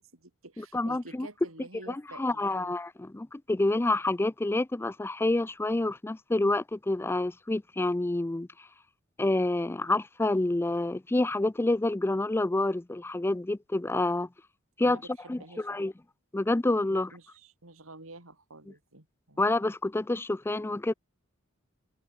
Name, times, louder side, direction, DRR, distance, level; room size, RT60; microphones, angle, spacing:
voice 1, 0.0-2.8 14.8-15.8 16.9-19.4, right 2 dB, 75° right, 4.1 m, -49 dB
voice 2, 0.7-1.3 1.9-8.5 9.2-14.3 14.8-15.0 15.3-15.9 16.3-17.1 19.4-20.9, left 2 dB, 10° left, 0.4 m, -28 dB
head